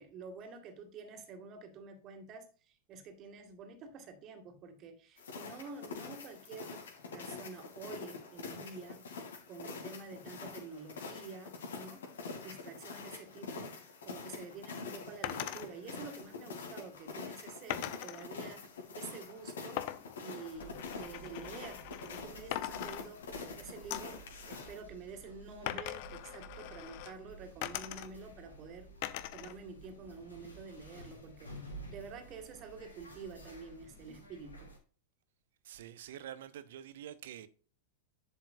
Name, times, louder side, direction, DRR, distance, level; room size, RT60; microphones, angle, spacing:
voice 1, 0.0-6.9 7.1-9.1 9.5-18.7 19.0-28.9 29.3-34.7, right 4 dB, 35° right, 2.2 m, -49 dB
sound 1, 5.2-24.8, left 4 dB, 65° left, 2.7 m, -46 dB
sound 2, 15.2-15.7 17.7-18.3 19.8-22.2 22.5-23.5 23.9-24.2 25.7-27.1 27.6-28.4 29.0-29.6 29.9-30.7, left 14 dB, 45° left, 0.8 m, -41 dB
sound 3, 20.5-34.8, right 2 dB, 80° left, 3.1 m, -53 dB
voice 2, 35.6-37.5, right 10 dB, 55° right, 0.9 m, -47 dB
11.0 x 7.5 x 2.6 m
figure-of-eight pair, 90°, 0 cm